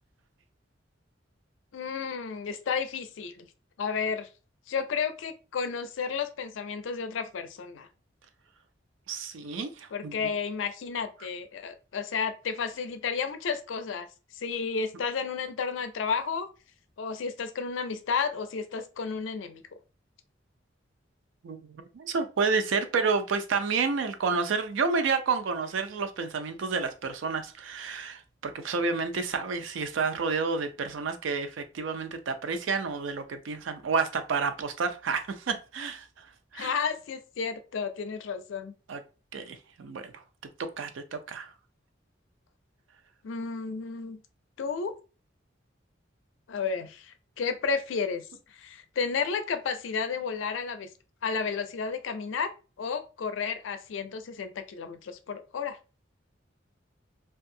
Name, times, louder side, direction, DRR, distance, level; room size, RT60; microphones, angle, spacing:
voice 1, 1.7-3.5 3.8-4.3 4.7-7.9 9.9-14.1 14.3-16.5 17.0-19.6 36.5-38.7 43.2-44.2 44.6-44.9 46.5-48.3 48.5-50.9 51.2-52.5 52.8-55.8, left 5 dB, 80° left, 0.4 m, -32 dB
voice 2, 9.1-10.3 21.4-36.1 36.5-36.7 38.9-39.0 39.3-40.2 40.8-41.5, right 4 dB, 75° right, 0.4 m, -30 dB
2.6 x 2.3 x 2.6 m
head